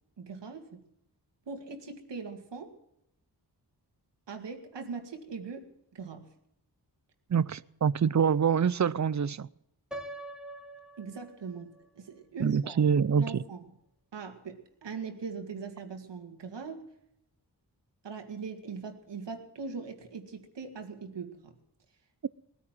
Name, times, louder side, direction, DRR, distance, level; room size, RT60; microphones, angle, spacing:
voice 1, 0.2-0.8 1.5-2.7 4.3-6.3 11.0-12.8 13.2-13.6 14.1-16.9 18.0-21.5, right 5 dB, 90° right, 5 dB, 2.2 m, -41 dB
voice 2, 7.3-9.5 12.4-13.4, right 7 dB, 45° right, 20 dB, 0.6 m, -25 dB
Piano, 9.9-11.9, right 1 dB, ahead, 2.4 m, -44 dB
19.0 x 9.8 x 7.4 m, 0.79 s
cardioid pair, 65°, 41 cm